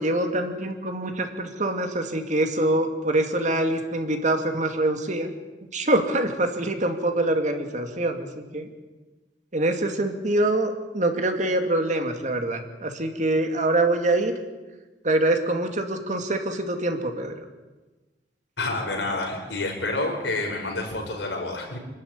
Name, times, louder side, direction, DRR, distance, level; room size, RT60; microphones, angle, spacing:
voice 1, 0.0-5.3 5.7-8.7 9.5-14.3 15.0-17.3, right 1 dB, 45° right, 5 dB, 2.4 m, -25 dB
voice 2, 18.6-21.8, left 2 dB, 85° left, 1 dB, 6.1 m, -28 dB
26.5 x 12.5 x 9.7 m, 1.2 s
head